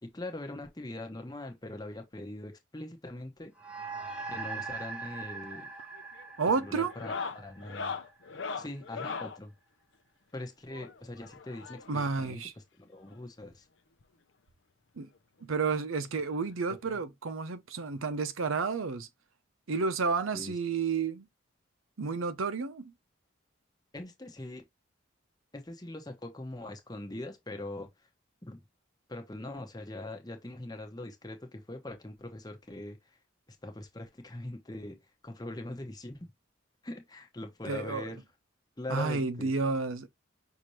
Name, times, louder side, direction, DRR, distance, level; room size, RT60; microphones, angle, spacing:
voice 1, 0.0-3.5 4.3-5.7 6.6-7.9 8.6-9.5 10.3-12.4 12.8-13.7 16.9-17.0 20.3-20.5 23.9-24.6 25.5-27.9 28.4-28.6 29.1-33.2 33.5-36.3 36.8-38.2 38.8-39.5, left 1 dB, 20° left, 0.9 m, -42 dB
sound 1, 3.6-8.3, right 4 dB, 5° right, 0.7 m, -41 dB
sound 2, 5.3-5.7 5.9-6.3 6.8-9.4 10.7-12.1 13.1-13.2 13.4-13.6 14.0-14.1 15.4-15.5 16.8-16.9, left 5 dB, 65° left, 0.6 m, -39 dB
voice 2, 6.4-6.9 11.9-12.5 15.0-15.1 15.4-19.1 19.7-21.3 22.0-22.9 37.7-38.0 38.9-40.1, right 4 dB, 85° right, 0.7 m, -31 dB
5.9 x 2.7 x 3.1 m
head